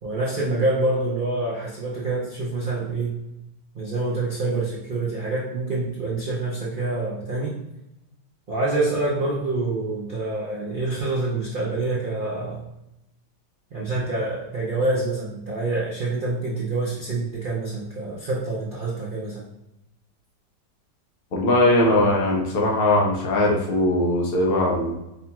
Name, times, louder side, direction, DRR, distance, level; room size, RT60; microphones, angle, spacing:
voice 1, 0.0-3.1 3.7-7.6 8.5-12.6 13.7-19.5, right 2 dB, 75° right, -5 dB, 0.4 m, -26 dB
voice 2, 21.3-25.0, left 1 dB, 75° left, -2 dB, 0.5 m, -20 dB
5.0 x 2.9 x 2.3 m, 0.91 s
omnidirectional pair, 1.9 m